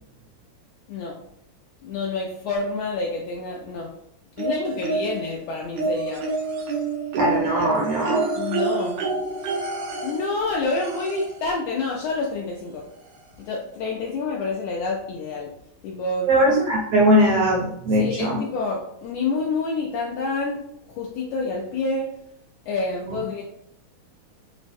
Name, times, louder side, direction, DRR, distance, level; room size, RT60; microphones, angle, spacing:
voice 1, 0.9-1.2 1.8-3.9 4.4-6.2 8.3-9.1 10.0-12.8 13.4-15.5 15.8-16.3 18.0-20.6 20.9-22.2 22.7-23.4, left 3 dB, 80° left, -2 dB, 1.5 m, -28 dB
sound 1, 4.4-5.3 5.8-11.5 12.7-12.8 13.1-13.2, right 4 dB, 90° right, 1.2 m, -28 dB
voice 2, 7.1-8.3 16.2-18.4 23.1-23.2, equal, 75° right, -2 dB, 1.5 m, -20 dB
6.2 x 2.1 x 2.6 m, 0.74 s
omnidirectional pair, 3.4 m